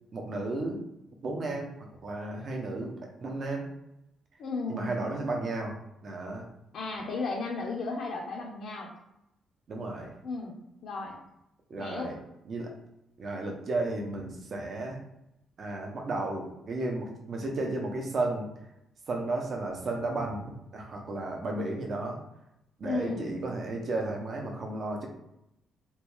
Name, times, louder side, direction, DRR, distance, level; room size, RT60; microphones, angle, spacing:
voice 1, 0.1-0.8 1.2-1.7 2.0-2.9 3.2-3.7 4.7-5.8 6.0-6.5 9.7-10.1 11.7-12.2 12.5-12.7 13.2-15.0 15.6-18.5 19.1-22.2 22.8-25.1, right 2 dB, 40° right, 1 dB, 0.6 m, -33 dB
voice 2, 4.4-5.0 6.7-8.9 10.2-11.2 11.8-12.1 22.8-23.4, left 3 dB, 55° left, -2 dB, 0.5 m, -34 dB
3.0 x 2.2 x 3.1 m, 0.85 s
cardioid pair, 170°, 0 cm